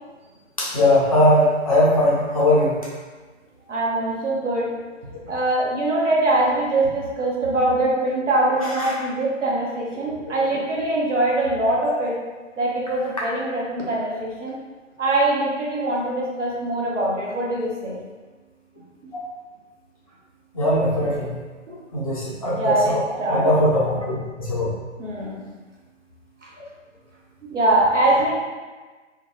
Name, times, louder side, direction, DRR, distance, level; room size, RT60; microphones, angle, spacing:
voice 1, 0.6-2.8 8.8-8.9 20.5-21.3 21.9-23.0 23.3-24.7, left 1 dB, 30° left, -7 dB, 0.5 m, -20 dB
voice 2, 3.7-4.7 5.2-12.1 12.6-14.5 15.0-18.0 21.7-21.8 22.6-23.5 25.0-25.5 26.4-26.5 27.5-28.3, right 2 dB, 70° right, -4 dB, 0.9 m, -23 dB
2.5 x 2.2 x 2.7 m, 1.3 s
figure-of-eight pair, 135°, 38 cm